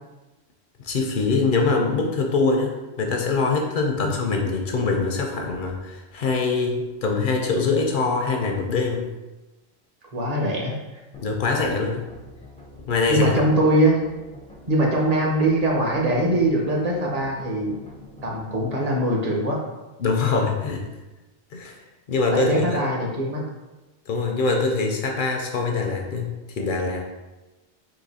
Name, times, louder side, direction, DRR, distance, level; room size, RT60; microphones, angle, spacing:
voice 1, 0.8-9.1 11.2-12.0 12.9-13.4 20.0-20.8 21.5-21.8 22.1-22.8 24.1-27.1, left 4 dB, 60° left, 2 dB, 0.6 m, -23 dB
voice 2, 10.1-10.8 13.1-14.0 14.7-17.8 18.2-19.6 22.3-23.4, right 1 dB, 40° right, -1 dB, 0.8 m, -22 dB
sound 1, 11.1-18.8, left 2 dB, 10° left, 0.3 m, -45 dB
3.9 x 2.8 x 4.0 m, 1.1 s
omnidirectional pair, 1.1 m